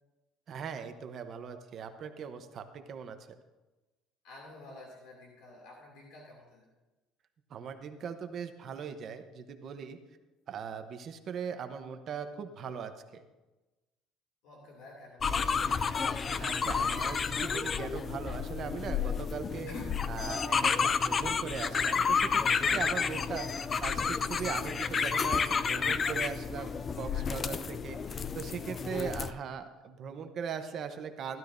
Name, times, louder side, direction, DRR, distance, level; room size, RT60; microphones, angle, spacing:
voice 1, 0.5-3.2 7.5-10.0 10.5-13.2 16.4-19.7 20.1-22.4 22.7-23.5 23.8-31.4, right 7 dB, 40° right, 7 dB, 0.9 m, -40 dB
voice 2, 4.2-6.6 14.4-16.1 19.7-19.9 21.0-21.5 22.6-23.3 27.0-27.5 28.9-29.2, left 2 dB, 80° left, -1 dB, 2.6 m, -50 dB
sound 1, 15.2-29.3, left 5 dB, 25° left, 0.4 m, -31 dB
16.0 x 12.0 x 2.7 m, 1.1 s
cardioid pair, 150°, 0 cm